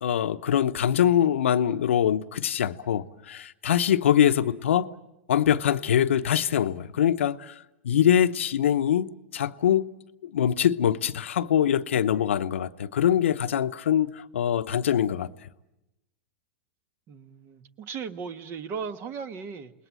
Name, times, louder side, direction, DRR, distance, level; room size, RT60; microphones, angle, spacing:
voice 1, 0.0-4.9 5.3-7.6 7.8-9.9 10.3-15.3, left 10 dB, 85° left, 0.9 m, -23 dB
voice 2, 17.1-19.7, right 6 dB, 35° right, 1.5 m, -37 dB
28.5 x 20.0 x 7.6 m
hypercardioid pair, 120°, 7 cm